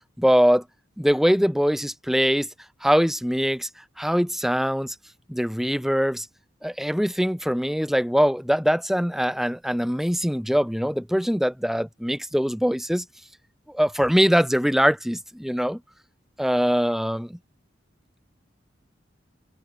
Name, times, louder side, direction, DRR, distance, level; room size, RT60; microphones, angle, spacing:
voice 1, 0.2-0.6 1.0-2.5 2.8-3.7 4.0-4.9 5.3-6.3 6.6-13.0 13.7-15.8 16.4-17.4, equal, ahead, 2.3 m, -22 dB
head